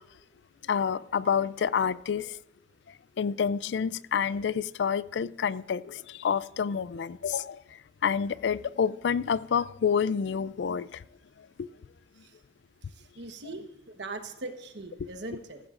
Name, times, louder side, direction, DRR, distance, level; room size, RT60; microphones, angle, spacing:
voice 1, 0.7-2.4 3.2-7.6 8.0-11.0 11.6-11.7, left 7 dB, 70° left, 0.4 m, -28 dB
voice 2, 13.2-15.6, right 2 dB, 65° right, 1.1 m, -40 dB
15.0 x 15.0 x 2.5 m
head